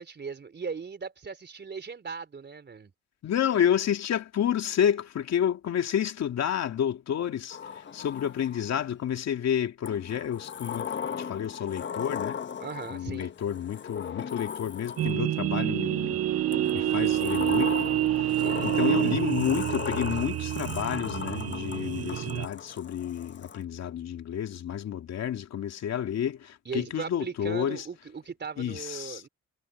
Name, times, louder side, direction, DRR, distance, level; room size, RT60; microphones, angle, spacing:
voice 1, 0.0-2.9 12.6-13.3 18.4-18.7 26.7-29.3, right 5 dB, 35° right, 4.1 m, -38 dB
voice 2, 3.2-12.4 12.9-16.2 16.7-17.7 18.1-27.9 28.6-29.2, left 9 dB, 60° left, 2.6 m, -30 dB
Sliding door, 7.5-8.9 9.8-15.4 16.5-23.6, left 7 dB, 35° left, 1.3 m, -37 dB
sound 1, 15.0-22.5, right 13 dB, 50° right, 0.6 m, -27 dB
supercardioid pair, 80°, 30 cm